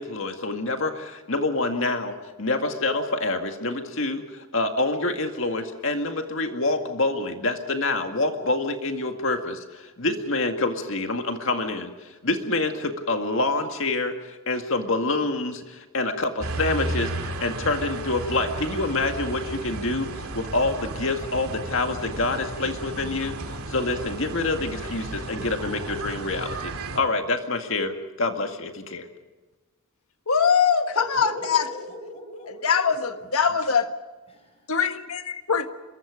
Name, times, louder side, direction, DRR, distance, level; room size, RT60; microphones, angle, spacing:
voice 1, 0.0-23.4 23.7-29.1, left 2 dB, 60° left, 5 dB, 2.0 m, -27 dB
sound 1, 16.4-27.0, right 2 dB, 85° right, 2.3 m, -34 dB
voice 2, 30.3-31.6 32.6-33.9 34.7-35.2 35.5-35.6, left 6 dB, 75° left, 8 dB, 1.5 m, -22 dB
voice 3, 31.0-33.1 34.3-34.7, left 1 dB, 25° left, 3 dB, 6.5 m, -39 dB
26.0 x 23.0 x 5.1 m, 1.2 s
head